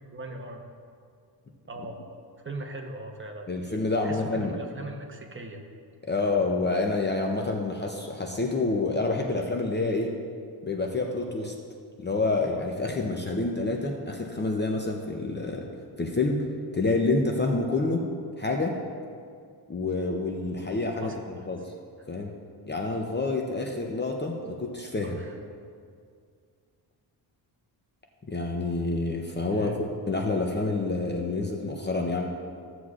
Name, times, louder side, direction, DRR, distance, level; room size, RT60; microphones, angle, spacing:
voice 1, 0.1-0.6 1.7-2.0 2.4-3.5 4.0-5.6 21.0-21.2 25.0-25.4 29.5-29.8, right 1 dB, 25° right, 2 dB, 1.0 m, -39 dB
voice 2, 3.5-4.6 6.1-10.1 10.6-11.5 12.0-15.6 16.0-16.4 16.7-18.1 18.4-18.8 19.7-21.6 22.1-22.3 22.7-25.2 28.3-29.7 30.1-32.2, left 3 dB, 25° left, 1 dB, 0.7 m, -28 dB
15.5 x 7.9 x 2.5 m, 2.2 s
cardioid pair, 115°, 46 cm